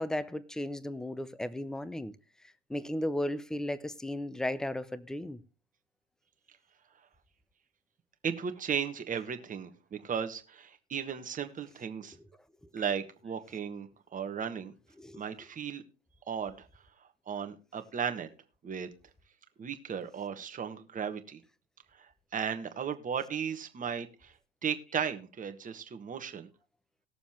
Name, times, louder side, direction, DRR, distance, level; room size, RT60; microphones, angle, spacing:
voice 1, 0.0-2.1 2.7-5.4 15.0-15.2, left 1 dB, ahead, 0.7 m, -35 dB
voice 2, 8.2-12.2 12.7-14.7 15.1-15.8 16.3-16.7 17.3-18.3 18.6-18.9 19.6-21.4 22.3-24.3 24.6-26.5, right 7 dB, 25° right, 1.4 m, -35 dB
19.5 x 7.0 x 3.1 m
figure-of-eight pair, 80°, 33 cm